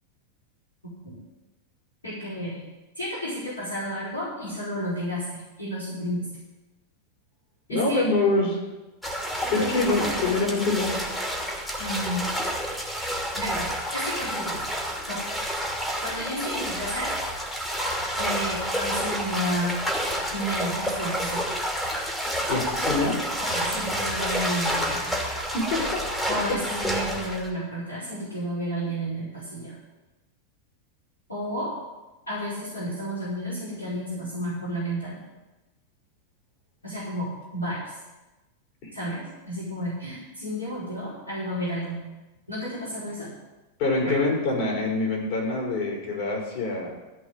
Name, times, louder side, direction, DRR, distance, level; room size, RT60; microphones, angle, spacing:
voice 1, 2.0-2.6 2.9-6.2 7.7-8.0 9.6-10.1 10.5-10.6 11.8-12.2 13.3-14.6 15.1-15.3 16.0-17.1 18.1-19.7 20.3-21.5 23.4-25.1 26.3-29.7 31.3-31.7 32.3-35.2 36.8-37.8 38.9-42.0 42.5-43.3 44.0-44.2, equal, 80° left, -10 dB, 5.0 m, -31 dB
voice 2, 7.7-8.6 9.5-11.0 22.5-23.2 25.5-26.0 43.8-46.9, left 3 dB, 45° left, -2 dB, 5.1 m, -25 dB
sound 1, 9.0-27.5, equal, 5° left, 2.7 m, -29 dB
14.5 x 5.6 x 9.7 m, 1.1 s
figure-of-eight pair, 90°, 0 cm